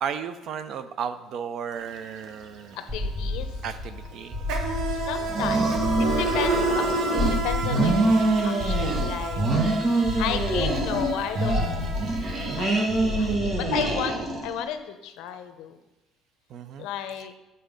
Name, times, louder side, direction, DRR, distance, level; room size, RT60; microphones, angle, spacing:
voice 1, 0.0-2.8 3.6-4.4 16.5-16.9, right 7 dB, 45° right, 11 dB, 0.5 m, -34 dB
Insect, 1.8-2.0 2.2-13.2, right 3 dB, 70° right, 1.0 m, -32 dB
voice 2, 2.7-3.5 4.9-6.8 7.3-9.4 10.0-11.7 12.6-15.8 16.8-17.3, left 9 dB, 80° left, 9 dB, 0.7 m, -33 dB
sound 1, 2.9-14.2, left 2 dB, 10° right, 1.0 m, -32 dB
sound 2, 5.3-7.3 7.6-9.1 9.3-11.1 11.3-14.5, right 2 dB, 30° right, 1.1 m, -25 dB
9.2 x 4.2 x 5.1 m, 1.0 s
cardioid pair, 175°, 0 cm